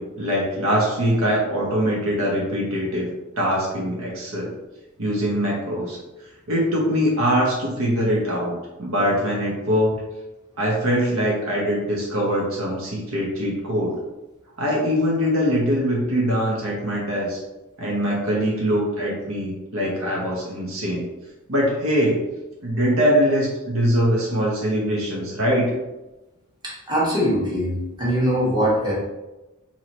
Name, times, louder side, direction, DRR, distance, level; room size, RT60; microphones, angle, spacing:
voice 1, 0.0-3.1 3.4-4.5 5.0-6.0 6.5-10.0 10.6-14.0 14.6-17.4 17.8-21.1 21.5-22.2 22.6-25.7, equal, 70° right, -3 dB, 1.0 m, -22 dB
voice 2, 26.6-28.9, equal, 20° right, -7 dB, 1.4 m, -22 dB
4.7 x 2.9 x 2.9 m, 1.0 s
head